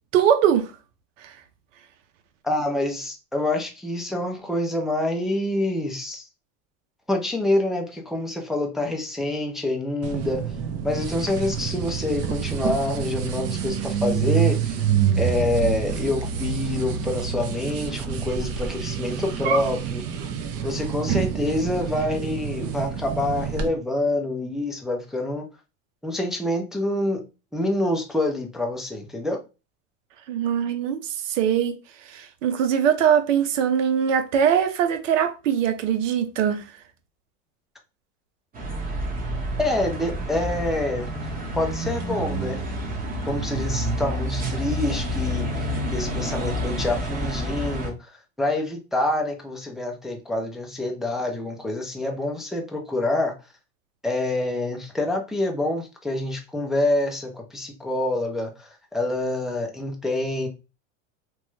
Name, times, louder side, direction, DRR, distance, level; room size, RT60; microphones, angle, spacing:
voice 1, 0.1-0.7 30.3-31.0 31.3-31.7 32.1-36.6, right 8 dB, 85° right, 0.7 m, -21 dB
voice 2, 2.4-6.2 7.1-10.5 10.8-14.8 15.2-20.3 20.6-25.5 26.0-27.2 27.5-29.4 39.6-41.1 41.5-42.6 43.3-45.5 45.9-48.1 48.4-53.3 54.0-58.5 58.9-60.5, left 1 dB, ahead, 0.3 m, -26 dB
sound 1, 10.0-23.7, right 7 dB, 40° right, 0.7 m, -27 dB
sound 2, 38.5-47.9, equal, 25° right, 1.0 m, -29 dB
3.0 x 2.2 x 3.1 m
supercardioid pair, 120°, 37 cm